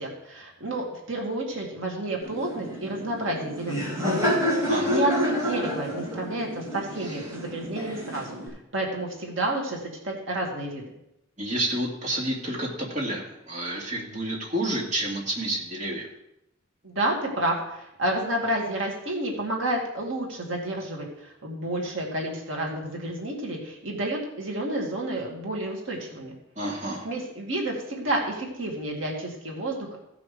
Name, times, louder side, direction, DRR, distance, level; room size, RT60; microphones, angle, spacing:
voice 1, 0.0-4.4 4.9-8.4 8.7-10.8 16.8-26.3 27.0-30.0, right 1 dB, 65° right, -1 dB, 2.4 m, -30 dB
Laughter, 2.2-8.5, left 1 dB, 15° right, 5.2 m, -29 dB
voice 2, 4.7-5.0 7.0-7.2 11.4-16.1 26.6-27.1, right 1 dB, 35° right, -2 dB, 2.5 m, -29 dB
15.5 x 6.1 x 5.0 m, 0.83 s
head